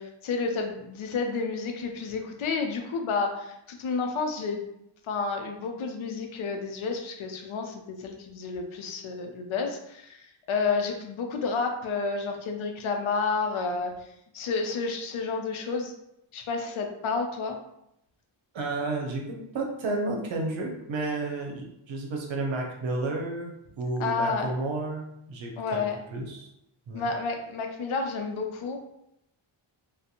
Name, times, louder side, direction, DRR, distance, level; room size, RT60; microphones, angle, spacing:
voice 1, 0.0-4.6 5.1-13.9 14.3-15.9 16.3-17.6 24.0-24.5 25.6-26.0 26.9-28.8, left 4 dB, 70° left, 4 dB, 0.6 m, -30 dB
voice 2, 18.5-25.8 26.1-26.5 26.9-27.1, right 2 dB, 65° right, 1 dB, 0.7 m, -32 dB
2.5 x 2.1 x 2.8 m, 0.80 s
cardioid pair, 80°, 50 cm